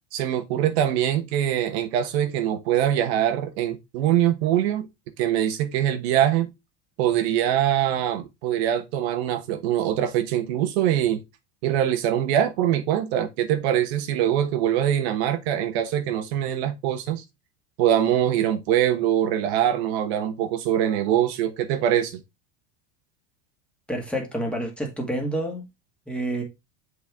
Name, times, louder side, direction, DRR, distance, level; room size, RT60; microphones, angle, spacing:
voice 1, 0.1-4.9 5.2-6.5 7.0-11.2 11.6-17.2 17.8-22.2, right 11 dB, 70° right, 1.2 m, -23 dB
voice 2, 23.9-25.6 26.1-26.4, right 1 dB, 5° left, 1.9 m, -28 dB
7.7 x 4.5 x 3.5 m
supercardioid pair, 150°, 34 cm